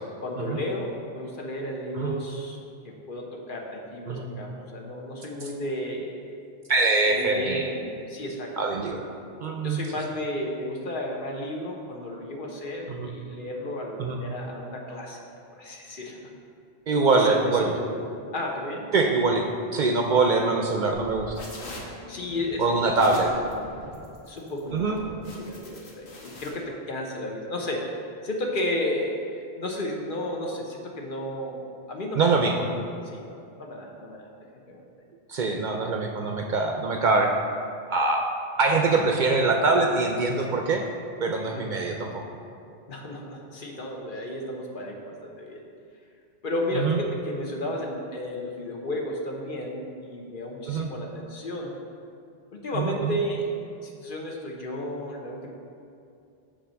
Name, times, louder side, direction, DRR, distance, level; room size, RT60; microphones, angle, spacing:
voice 1, 0.2-2.6 2.8-6.4 7.1-8.5 9.6-15.2 15.6-16.2 17.1-18.0 18.3-18.9 22.1-22.8 23.2-23.7 24.3-32.3 32.6-32.8 33.1-34.3 34.7-34.8 41.5-41.8 42.9-45.6 46.4-51.7 52.5-53.5 53.8-55.5, left 1 dB, 55° left, 0 dB, 1.0 m, -33 dB
voice 2, 6.7-7.6 8.6-9.1 9.4-9.8 12.9-13.1 14.0-14.2 16.9-17.7 18.9-19.5 19.7-21.3 22.6-23.3 24.7-25.0 32.2-32.6 35.3-37.3 37.9-38.3 38.6-40.8 41.2-42.2 46.7-47.0 50.7-50.9 52.7-53.2, right 3 dB, 55° right, 2 dB, 0.6 m, -23 dB
sound 1, 20.9-26.5, left 1 dB, 85° left, 1.4 m, -42 dB
5.7 x 4.2 x 6.2 m, 2.5 s
omnidirectional pair, 1.1 m